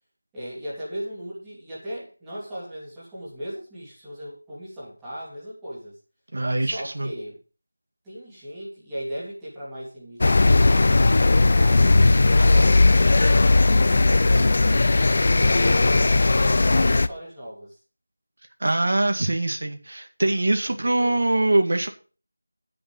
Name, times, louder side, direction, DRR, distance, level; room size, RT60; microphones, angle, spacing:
voice 1, 0.3-6.0 6.6-7.4 8.0-11.0 11.3-12.0 12.4-14.9 15.6-17.8 20.8-21.3, equal, 5° right, -11 dB, 3.4 m, -37 dB
voice 2, 6.3-7.1 18.6-21.9, right 2 dB, 50° right, 5 dB, 1.9 m, -23 dB
sound 1, 10.2-17.1, left 2 dB, 35° left, 0.5 m, -17 dB
10.0 x 8.8 x 5.5 m, 0.36 s
figure-of-eight pair, 175°, 0 cm